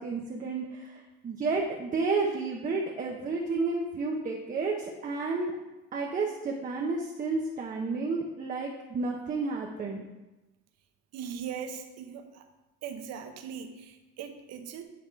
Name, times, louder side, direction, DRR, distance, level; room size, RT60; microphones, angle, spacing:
voice 1, 0.0-5.5 5.9-10.0, right 3 dB, 25° right, 0 dB, 0.7 m, -31 dB
voice 2, 11.1-12.4 12.8-14.8, right 7 dB, 55° right, 6 dB, 0.9 m, -40 dB
9.5 x 3.6 x 4.6 m, 1.1 s
cardioid pair, 135°, 31 cm